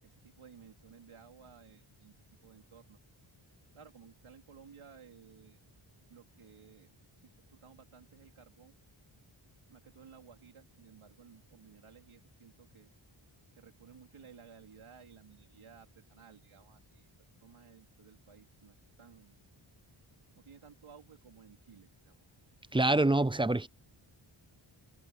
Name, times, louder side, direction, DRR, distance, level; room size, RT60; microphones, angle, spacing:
voice 1, 0.0-2.1 2.4-3.0 3.7-5.6 6.1-6.9 7.2-8.7 9.7-12.9 13.6-17.1 17.4-19.4 20.4-22.2, right 7 dB, 75° right, 3.8 m, -57 dB
voice 2, 22.7-23.7, right 2 dB, 10° right, 0.4 m, -26 dB
wide cardioid pair, 170°, 50 cm